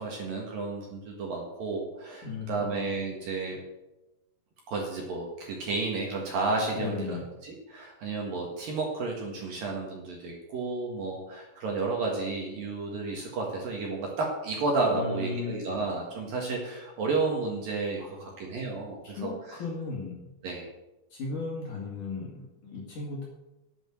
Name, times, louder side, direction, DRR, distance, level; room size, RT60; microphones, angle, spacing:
voice 1, 0.0-3.6 4.7-19.6 20.4-20.7, right 3 dB, 60° right, -1 dB, 2.8 m, -32 dB
voice 2, 2.2-2.8 6.7-7.2 14.9-15.8 18.0-18.3 19.0-20.3 21.1-23.3, left 4 dB, 50° left, -3 dB, 2.8 m, -36 dB
10.5 x 9.0 x 6.4 m, 0.98 s
omnidirectional pair, 5.7 m